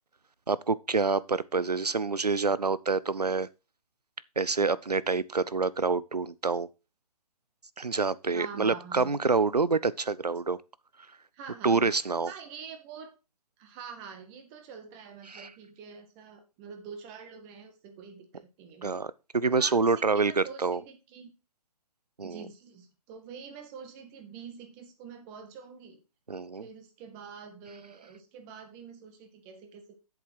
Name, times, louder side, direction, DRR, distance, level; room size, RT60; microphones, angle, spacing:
voice 1, 0.5-3.5 4.4-6.7 7.8-10.6 11.6-12.3 15.3-15.5 18.8-20.8 22.2-22.4 26.3-26.6, right 4 dB, 90° right, 0.7 m, -27 dB
voice 2, 8.3-9.1 11.3-11.9 12.3-13.1 13.6-19.1 19.6-21.3 22.2-26.0 26.6-30.0, right 6 dB, 25° right, 1.9 m, -46 dB
8.1 x 7.3 x 4.6 m
figure-of-eight pair, 135°, 20 cm